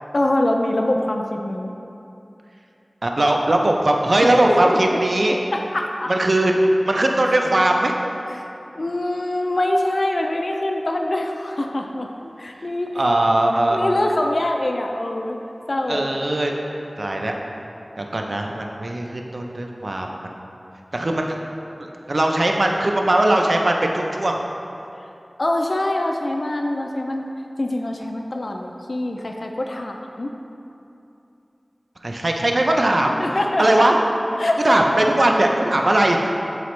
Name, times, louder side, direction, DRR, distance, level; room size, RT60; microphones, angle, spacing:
voice 1, 0.1-1.7 4.2-5.0 5.3-6.1 8.4-8.5 8.8-12.1 12.4-12.9 13.7-15.4 15.7-16.0 25.4-27.3 27.6-30.3 33.1-33.9 34.4-34.8, left 1 dB, 70° left, 2 dB, 0.4 m, -24 dB
voice 2, 3.0-5.4 6.1-6.5 6.8-7.9 12.9-13.8 15.9-16.5 17.0-17.3 18.0-20.3 20.9-21.3 21.8-24.4 32.0-33.2 33.6-34.0 34.6-36.3, right 1 dB, 70° right, 1 dB, 0.5 m, -19 dB
7.7 x 4.0 x 3.1 m, 2.8 s
wide cardioid pair, 40°, 0 cm